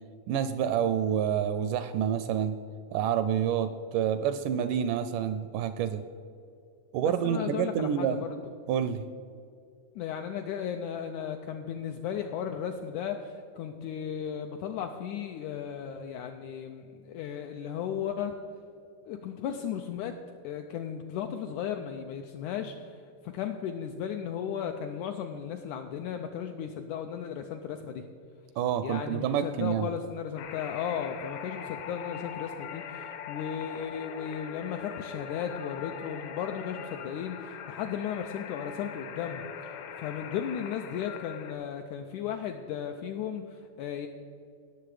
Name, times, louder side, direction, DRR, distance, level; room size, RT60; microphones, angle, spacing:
voice 1, 0.3-2.6 2.9-6.1 6.9-8.2 8.7-9.0 28.6-29.9, right 9 dB, 80° right, 11 dB, 1.9 m, -28 dB
voice 2, 7.0-8.4 9.9-18.3 19.0-20.1 20.4-28.0 28.8-44.1, left 8 dB, 90° left, 6 dB, 1.7 m, -35 dB
sound 1, 30.4-41.5, left 7 dB, 70° left, 1.9 m, -42 dB
17.5 x 6.9 x 4.8 m, 2.5 s
omnidirectional pair, 4.0 m